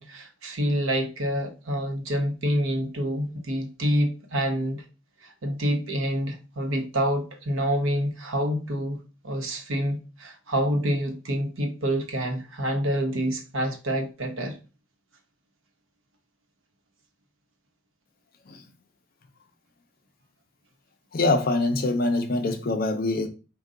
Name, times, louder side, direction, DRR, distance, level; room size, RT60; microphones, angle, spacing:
voice 1, 0.0-4.8 5.2-9.0 9.2-14.6, equal, 70° right, 0.9 m, -27 dB
voice 2, 21.1-23.3, left 2 dB, 45° left, 0.5 m, -24 dB
5.4 x 2.2 x 3.7 m
head